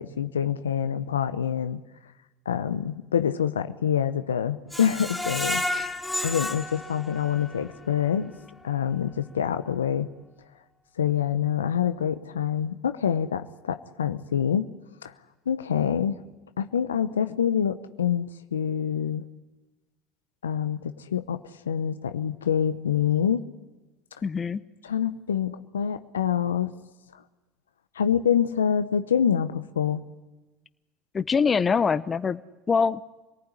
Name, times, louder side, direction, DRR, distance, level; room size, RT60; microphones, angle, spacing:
voice 1, 0.0-1.8 2.5-5.6 6.2-8.3 8.6-10.1 11.0-14.7 15.0-15.1 15.5-16.2 16.6-19.2 20.4-23.4 24.8-26.7 28.0-30.0, left 8 dB, 85° left, 11 dB, 0.9 m, -26 dB
Screech, 4.7-7.7 8.1-8.2 8.6-8.7, left 1 dB, 5° left, 2.0 m, -31 dB
voice 2, 24.2-24.6 31.1-32.4 32.7-33.0, left 5 dB, 30° left, 14 dB, 0.9 m, -24 dB
27.0 x 18.5 x 9.9 m, 1.1 s
hypercardioid pair, 75°, 0 cm